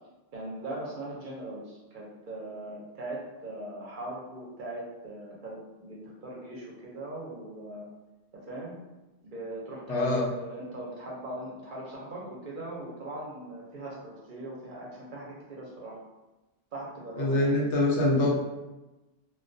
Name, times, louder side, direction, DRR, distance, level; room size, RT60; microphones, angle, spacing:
voice 1, 0.3-7.9 8.5-8.7 9.2-16.0 16.7-17.5, right 1 dB, 55° right, -4 dB, 0.6 m, -40 dB
voice 2, 9.9-10.3 17.2-18.3, left 2 dB, 85° left, -3 dB, 0.9 m, -24 dB
2.2 x 2.2 x 2.5 m, 1.1 s
omnidirectional pair, 1.1 m